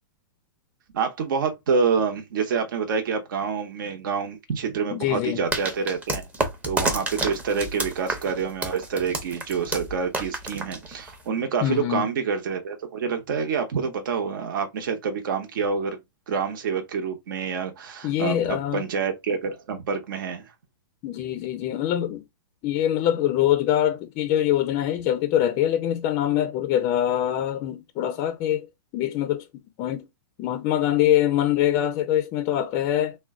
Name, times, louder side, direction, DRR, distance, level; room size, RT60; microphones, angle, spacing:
voice 1, 0.9-6.3 6.6-16.0 16.3-20.5, right 5 dB, 65° right, 0.9 m, -27 dB
voice 2, 4.9-5.4 11.6-12.0 18.0-18.8 21.0-22.2 22.6-28.7 28.9-29.4 29.8-30.0 30.4-33.2, left 11 dB, 30° left, 0.4 m, -24 dB
sound 1, 5.5-11.3, right 2 dB, 10° right, 0.7 m, -29 dB
3.6 x 2.2 x 3.6 m
hypercardioid pair, 145°, 12 cm